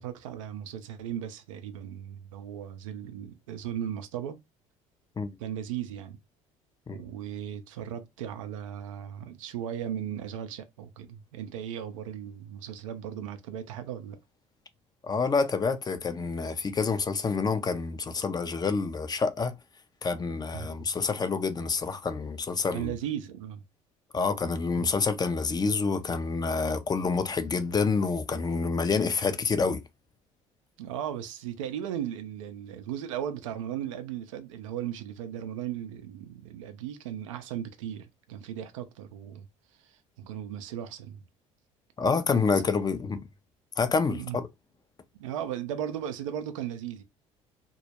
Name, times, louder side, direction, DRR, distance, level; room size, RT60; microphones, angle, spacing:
voice 1, 0.0-4.4 5.4-6.2 6.9-14.2 20.5-20.9 22.7-23.6 24.7-24.8 30.8-39.5 39.8-41.2 42.5-42.9 44.1-44.4 45.2-47.0, right 10 dB, 85° right, 0.4 m, -37 dB
voice 2, 15.0-19.5 20.0-22.9 24.1-29.8 42.0-43.2 43.8-44.5, left 4 dB, 25° left, 0.5 m, -27 dB
2.2 x 2.0 x 2.8 m
hypercardioid pair, 65°, 16 cm